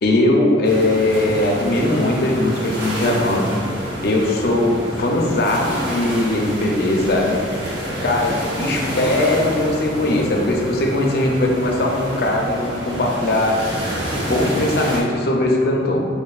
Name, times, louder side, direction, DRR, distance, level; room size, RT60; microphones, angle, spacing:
voice 1, 0.0-3.5 4.0-7.4 8.0-13.6 14.3-16.0, left 1 dB, 55° left, 0 dB, 0.5 m, -19 dB
sound 1, 0.6-15.0, equal, 75° right, 0.9 m, -28 dB
5.1 x 2.5 x 2.3 m, 2.2 s
head